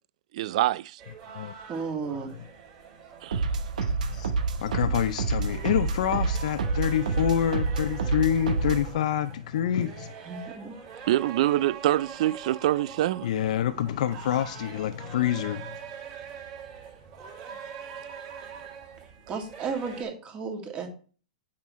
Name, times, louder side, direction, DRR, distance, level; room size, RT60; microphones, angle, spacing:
voice 1, 0.3-1.0 3.2-3.5 11.1-13.3, right 14 dB, 60° right, 0.4 m, -25 dB
sound 1, 1.0-20.0, right 6 dB, 45° right, 3.0 m, -44 dB
voice 2, 1.7-2.3 10.2-10.7 19.3-20.9, right 5 dB, 30° right, 2.3 m, -33 dB
sound 2, 3.3-8.9, right 4 dB, 80° right, 1.0 m, -28 dB
voice 3, 3.8-4.3 4.6-10.1 13.2-15.8, left 10 dB, 65° left, 0.6 m, -27 dB
8.5 x 6.0 x 3.1 m
hypercardioid pair, 120°, 4 cm